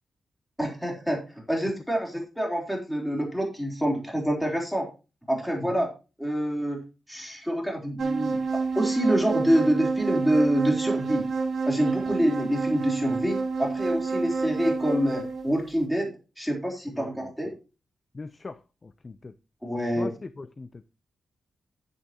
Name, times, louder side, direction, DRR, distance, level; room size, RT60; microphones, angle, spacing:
voice 1, 0.6-1.2 1.5-4.9 5.3-5.9 6.2-6.8 7.1-11.3 11.7-16.1 16.4-17.5 19.6-20.1, equal, ahead, 3.6 m, -26 dB
sound 1, 8.0-15.5, right 4 dB, 65° right, 4.5 m, -28 dB
voice 2, 16.9-17.3 18.1-19.3 19.8-20.7, left 3 dB, 30° left, 0.6 m, -40 dB
11.5 x 10.5 x 2.9 m
cardioid pair, 100°, 0 cm